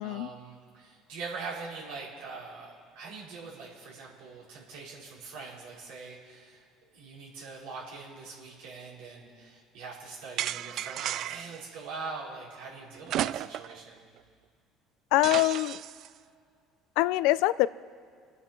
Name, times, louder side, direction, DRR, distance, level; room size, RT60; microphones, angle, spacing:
voice 1, 0.0-6.6 6.9-14.0, right 4 dB, 85° right, -6 dB, 4.9 m, -43 dB
sound 1, 10.4-11.6 13.1-13.8 14.2-14.3 15.2-16.1, right 12 dB, 60° right, 0.3 m, -33 dB
voice 2, 15.1-15.8 17.0-17.7, left 17 dB, 80° left, 18 dB, 0.4 m, -24 dB
28.0 x 9.6 x 4.5 m, 2.2 s
supercardioid pair, 100°, 0 cm